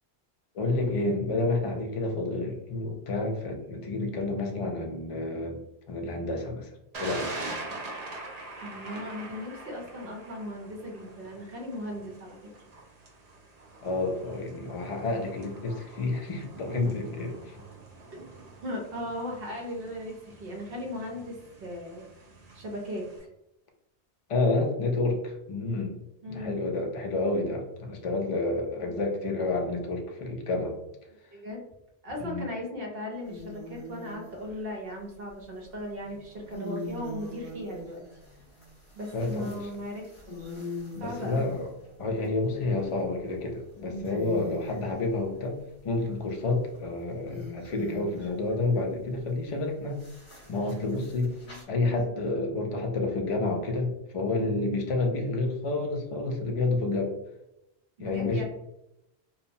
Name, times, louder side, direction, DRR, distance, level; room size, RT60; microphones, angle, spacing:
voice 1, 0.5-5.6 5.9-6.7 7.0-7.3 13.8-17.6 24.3-26.0 26.3-30.7 32.2-32.5 39.1-39.7 40.9-41.7 42.0-45.6 45.8-50.0 50.5-51.4 51.7-57.1 58.0-58.4, left 2 dB, 50° left, 2 dB, 0.4 m, -29 dB
Thunder, 6.9-23.2, right 2 dB, 50° right, 0.5 m, -44 dB
voice 2, 8.6-12.4 18.1-18.2 18.6-22.1 22.5-23.0 26.2-26.6 31.3-31.6 32.0-38.0 39.0-40.1 40.4-40.5 41.0-41.5 51.4-51.6 58.0-58.4, left 1 dB, 65° right, -1 dB, 0.9 m, -37 dB
sound 1, 33.2-34.7 36.0-41.9 42.5-43.1 43.5-43.6 43.9-44.8 46.1-48.5 49.9-51.6, left 2 dB, 75° left, 1.3 m, -42 dB
2.8 x 2.0 x 2.6 m, 0.84 s
omnidirectional pair, 1.1 m